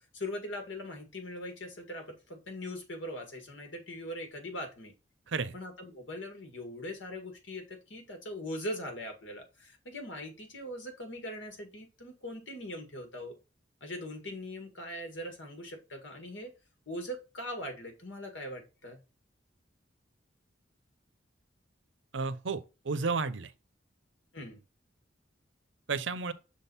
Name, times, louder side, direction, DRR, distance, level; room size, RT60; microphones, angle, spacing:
voice 1, 0.1-4.9 5.5-13.4 13.8-16.5 16.9-19.0 24.3-24.6, left 1 dB, 80° left, 1.8 m, -41 dB
voice 2, 22.1-23.5 25.9-26.3, right 4 dB, 75° right, 0.6 m, -32 dB
6.4 x 3.6 x 4.0 m
head